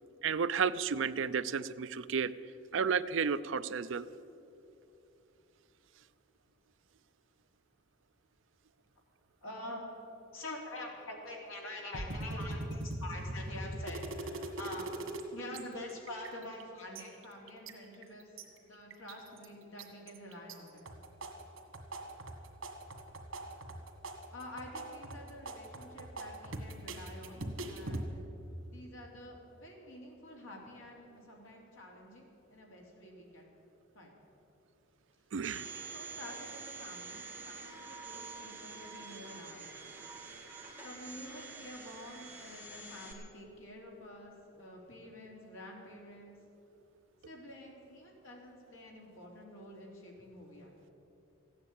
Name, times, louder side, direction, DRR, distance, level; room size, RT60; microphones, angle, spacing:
voice 1, 0.2-2.3 2.7-4.1 35.3-35.7, right 6 dB, 70° right, 14 dB, 0.5 m, -32 dB
voice 2, 9.4-9.9 10.3-14.9 15.3-20.9 24.3-28.3 28.7-33.5 33.9-34.2 35.6-39.9 40.8-46.4 47.2-50.7, left 1 dB, 75° left, -1 dB, 3.2 m, -47 dB
sound 1, 11.9-15.2 15.5-15.6 15.9-16.6 16.9-18.4 18.9-19.5 19.8-20.5 20.9-28.0, right 1 dB, 90° right, 1.8 m, -41 dB
Domestic sounds home sounds, 35.4-43.1, right 4 dB, 10° right, 1.7 m, -47 dB
15.0 x 9.6 x 8.8 m, 2.9 s
head